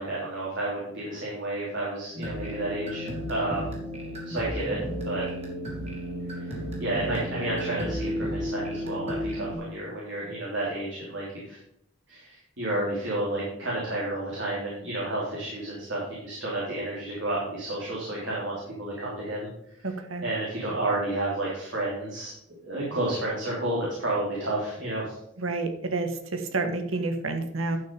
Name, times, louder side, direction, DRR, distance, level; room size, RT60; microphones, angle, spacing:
voice 1, 0.0-3.7 4.2-4.8 5.0-5.2 6.4-6.5 6.8-11.6 12.1-19.5 19.8-19.9 20.2-22.3 22.6-25.1, right 1 dB, 65° right, -6 dB, 3.2 m, -31 dB
sound 1, 2.1-9.5, equal, 30° right, 3.1 m, -33 dB
voice 2, 19.8-20.2 25.4-27.8, right 3 dB, 85° right, 6 dB, 1.4 m, -29 dB
11.5 x 6.0 x 5.3 m, 0.78 s
head